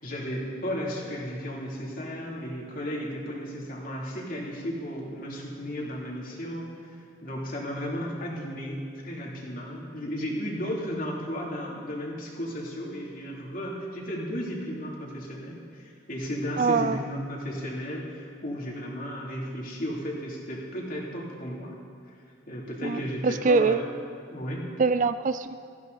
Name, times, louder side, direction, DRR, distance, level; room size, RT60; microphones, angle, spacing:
voice 1, 0.0-21.8 22.5-23.9 24.3-24.6, equal, 45° left, -3 dB, 3.0 m, -34 dB
voice 2, 16.6-17.0 22.8-23.8 24.8-25.5, right 4 dB, 40° right, 13 dB, 0.3 m, -24 dB
18.5 x 14.5 x 4.1 m, 2.3 s
head